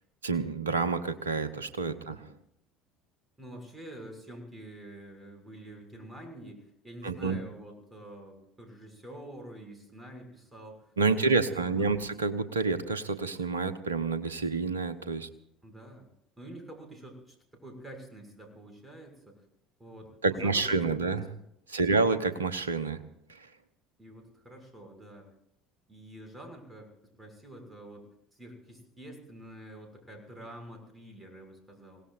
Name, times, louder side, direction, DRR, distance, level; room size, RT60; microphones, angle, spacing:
voice 1, 0.2-2.2 7.0-7.4 11.0-15.3 20.2-21.2 21.7-23.0, right 4 dB, 85° right, 11 dB, 1.0 m, -28 dB
voice 2, 3.4-12.1 15.6-16.1 16.4-19.3 19.8-21.2 21.8-22.2 24.0-25.3 25.9-26.9 27.2-32.0, right 1 dB, 15° right, 4 dB, 6.4 m, -47 dB
27.0 x 18.0 x 2.6 m, 0.75 s
figure-of-eight pair, 65°, 0 cm